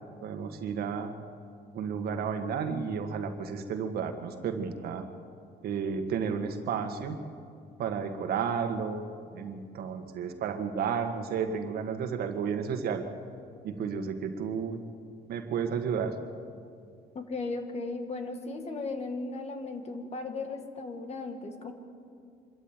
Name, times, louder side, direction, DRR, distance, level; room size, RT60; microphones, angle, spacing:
voice 1, 0.2-1.1 1.7-5.1 5.6-7.2 7.8-9.0 9.3-13.0 13.6-14.8 15.3-16.2, right 6 dB, 65° right, 7 dB, 1.8 m, -32 dB
voice 2, 17.1-21.7, left 3 dB, 40° left, 6 dB, 2.2 m, -36 dB
25.0 x 13.5 x 9.0 m, 2.4 s
cardioid pair, 110°, 17 cm